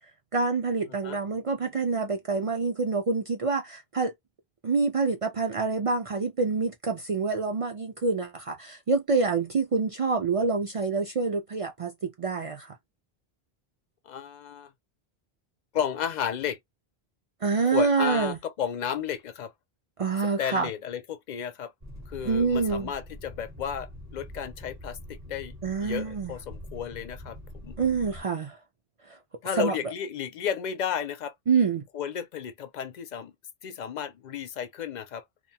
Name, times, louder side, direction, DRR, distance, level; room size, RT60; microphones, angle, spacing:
voice 1, 0.3-4.1 4.6-11.9 12.2-12.7 17.4-18.4 20.0-20.7 22.2-22.9 25.6-26.3 27.8-28.6 29.1-29.2 29.5-29.7 31.5-31.8, right 4 dB, 55° right, 0.4 m, -26 dB
voice 2, 14.1-14.7 15.7-16.6 17.7-19.5 20.4-21.7 22.1-25.5 25.8-27.4 27.6-27.8 29.4-31.3 31.9-33.3 33.6-35.2, left 8 dB, 55° left, 0.5 m, -33 dB
sound 1, 21.8-28.2, left 1 dB, 20° right, 0.7 m, -44 dB
2.6 x 2.2 x 2.7 m
omnidirectional pair, 1.0 m